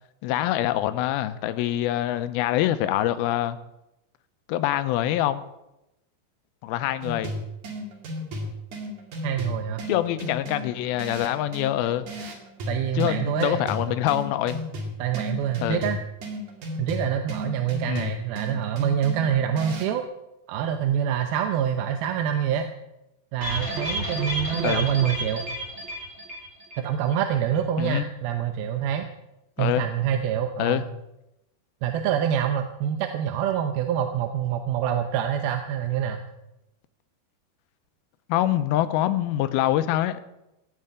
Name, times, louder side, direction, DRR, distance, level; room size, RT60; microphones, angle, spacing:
voice 1, 0.2-3.6 4.5-5.4 6.6-7.3 9.9-12.1 13.0-14.6 15.6-15.8 17.9-18.1 24.6-24.9 27.8-28.1 29.6-29.8 30.6-30.8 38.3-40.2, left 13 dB, 80° left, 12 dB, 2.4 m, -25 dB
sound 1, 7.0-20.0, left 1 dB, 50° right, 3.3 m, -35 dB
voice 2, 9.2-9.8 12.7-13.6 15.0-16.0 16.8-20.0 20.5-22.7 23.3-25.5 26.8-29.1 29.6-30.8 31.8-36.2, right 9 dB, 75° right, 6 dB, 2.6 m, -26 dB
sound 2, 23.4-26.9 27.1-27.2 27.5-27.6, right 1 dB, 20° right, 2.5 m, -31 dB
16.5 x 6.7 x 8.8 m, 0.91 s
omnidirectional pair, 4.8 m